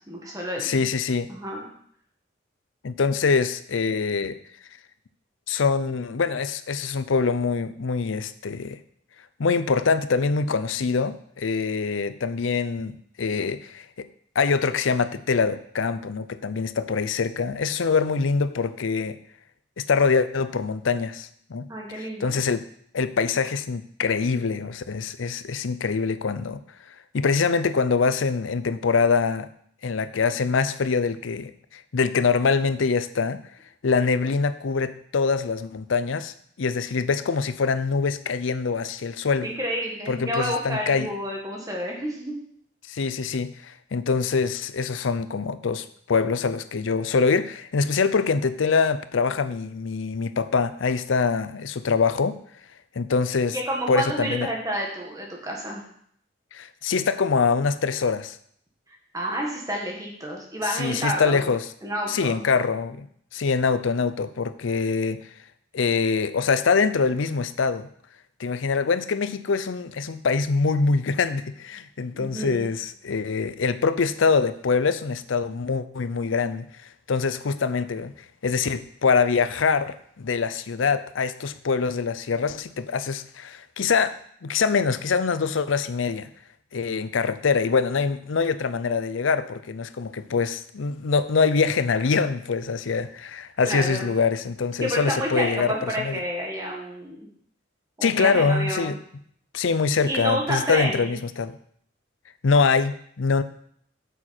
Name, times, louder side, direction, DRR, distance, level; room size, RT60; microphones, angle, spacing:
voice 1, 0.1-0.9 1.3-1.7 21.7-22.4 39.4-42.3 53.5-55.8 59.1-61.5 61.8-62.4 72.1-72.7 93.6-94.1 94.8-97.3 98.0-99.0 100.1-101.2, equal, 20° right, -1 dB, 1.8 m, -29 dB
voice 2, 0.6-1.3 2.8-4.4 5.5-8.8 9.4-14.1 14.4-19.2 19.8-22.6 22.9-26.6 27.1-29.5 29.8-33.4 33.8-39.5 40.1-41.1 42.9-52.4 53.0-53.6 53.9-54.5 56.5-58.4 60.6-61.7 62.1-63.1 63.3-65.2 65.7-67.9 68.4-76.7 77.1-78.1 78.4-84.1 84.4-86.3 86.7-96.2 98.0-98.9 99.5-101.5 102.4-103.4, left 5 dB, 85° left, 13 dB, 0.6 m, -24 dB
8.7 x 7.1 x 4.4 m, 0.65 s
head